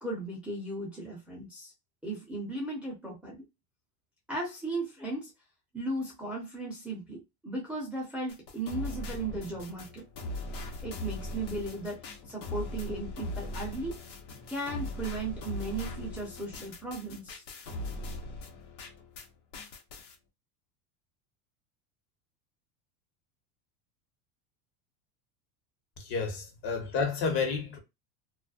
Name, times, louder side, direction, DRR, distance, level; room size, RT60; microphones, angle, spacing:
voice 1, 0.0-1.7 2.0-3.4 4.3-5.3 5.7-10.1 10.8-14.0 14.5-17.4, right 2 dB, ahead, 0.7 m, -36 dB
sound 1, 8.3-19.3 19.5-20.1, left 1 dB, 80° left, 1.0 m, -40 dB
voice 2, 26.0-27.8, left 5 dB, 50° left, 1.1 m, -30 dB
2.4 x 2.2 x 2.4 m
supercardioid pair, 130°, 49 cm